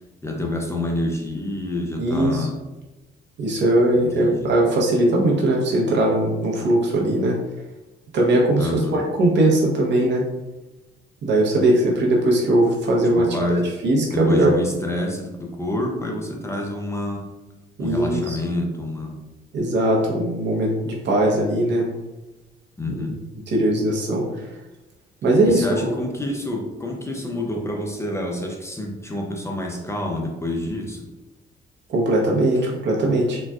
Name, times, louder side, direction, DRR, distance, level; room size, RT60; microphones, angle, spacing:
voice 1, 0.2-2.6 3.9-4.5 8.6-9.0 13.0-13.7 14.1-17.3 17.8-19.2 22.8-23.2 25.5-31.1, left 1 dB, 15° left, 0 dB, 0.5 m, -27 dB
voice 2, 2.0-2.4 3.4-7.4 8.1-10.2 11.2-14.6 17.8-18.4 19.5-21.8 22.9-23.0 23.5-24.2 25.2-25.9 31.9-33.4, right 1 dB, 65° right, -2 dB, 0.9 m, -20 dB
4.0 x 2.2 x 2.3 m, 1.0 s
cardioid pair, 90°, 20 cm